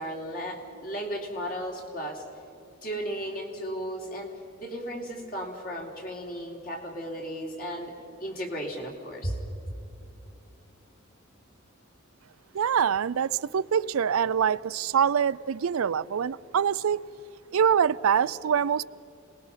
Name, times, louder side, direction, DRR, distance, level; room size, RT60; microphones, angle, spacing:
voice 1, 0.0-2.2 2.8-7.9 8.2-9.3, equal, 45° left, 3.5 m, -35 dB
voice 2, 12.5-17.0 17.5-18.8, right 8 dB, 90° right, 0.4 m, -24 dB
27.5 x 20.0 x 5.7 m
head